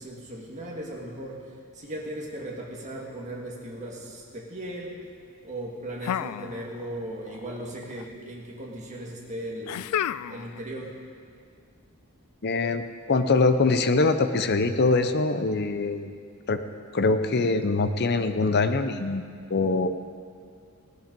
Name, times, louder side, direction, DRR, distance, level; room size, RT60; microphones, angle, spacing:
voice 1, 0.0-1.5 1.7-4.9 5.4-9.9 10.3-10.9, right 1 dB, 35° right, -2 dB, 1.9 m, -37 dB
sound 1, 6.0-7.0 7.3-8.0 9.7-10.6, left 10 dB, 85° left, 0.3 m, -32 dB
voice 2, 12.4-16.1 16.5-16.6 16.9-19.2 19.5-19.9, left 3 dB, 50° left, 9 dB, 0.7 m, -23 dB
17.0 x 10.5 x 5.3 m, 2.3 s
head